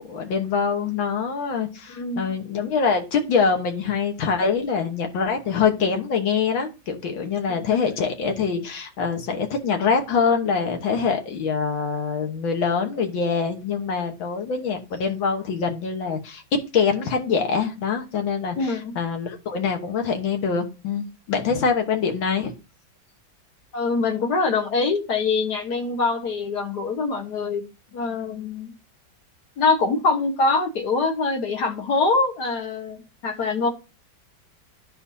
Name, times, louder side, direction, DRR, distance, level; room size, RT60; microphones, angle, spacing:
voice 1, 0.1-22.5, left 5 dB, 80° left, 4 dB, 2.1 m, -24 dB
voice 2, 1.9-2.3 7.6-7.8 18.6-18.9 23.7-27.6 27.9-28.7 29.6-33.7, left 3 dB, 60° left, 3 dB, 1.8 m, -24 dB
12.5 x 4.4 x 2.8 m, 0.30 s
omnidirectional pair, 2.1 m